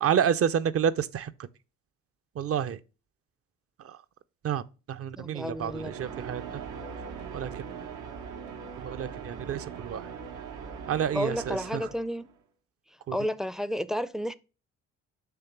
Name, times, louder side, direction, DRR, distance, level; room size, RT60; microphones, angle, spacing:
voice 1, 0.0-1.3 2.4-2.8 3.8-4.0 4.4-6.4 7.3-7.6 8.8-10.1 10.9-11.9 13.1-13.2, right 8 dB, 50° right, 0.6 m, -29 dB
voice 2, 5.2-5.9 11.1-12.3 13.1-14.4, equal, ahead, 0.4 m, -31 dB
sound 1, 5.5-12.3, right 6 dB, 85° right, 1.1 m, -41 dB
6.9 x 3.2 x 5.9 m
cardioid pair, 90°, 30 cm